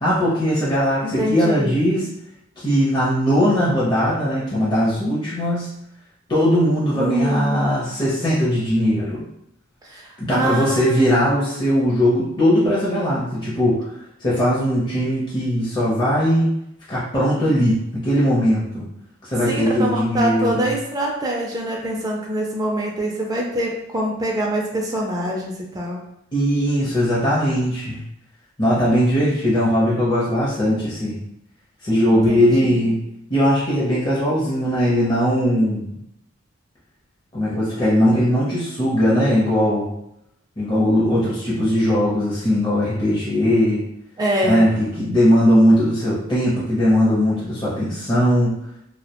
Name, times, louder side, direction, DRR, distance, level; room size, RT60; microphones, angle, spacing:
voice 1, 0.0-2.1 2.6-5.7 6.3-9.2 10.2-13.9 14.2-16.5 16.9-18.9 19.2-20.7 26.3-28.0 28.6-31.2 31.8-33.0 33.3-36.0 37.3-39.9 40.6-43.8 44.4-48.6, equal, 25° left, -9 dB, 0.6 m, -19 dB
voice 2, 1.0-1.7 6.9-7.6 9.8-11.3 19.5-26.0 32.1-32.9 44.2-44.7, right 1 dB, 20° right, -2 dB, 0.3 m, -25 dB
2.3 x 2.1 x 2.8 m, 0.79 s
head